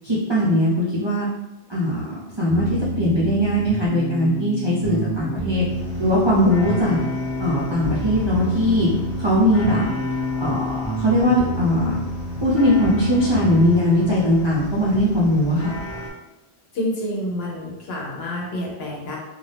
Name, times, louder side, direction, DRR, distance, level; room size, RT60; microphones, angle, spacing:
voice 1, 0.0-1.3 1.7-2.7 3.0-5.6 6.0-7.0 7.4-8.9 9.2-9.8 10.4-12.0 12.3-15.7, equal, 40° right, -8 dB, 0.4 m, -20 dB
sound 1, 2.5-13.8, equal, 35° left, 0.8 m, -29 dB
sound 2, 5.7-16.1, equal, ahead, 1.1 m, -36 dB
voice 2, 16.7-19.2, left 1 dB, 70° left, -3 dB, 1.0 m, -28 dB
2.6 x 2.2 x 3.2 m, 1.0 s
omnidirectional pair, 1.1 m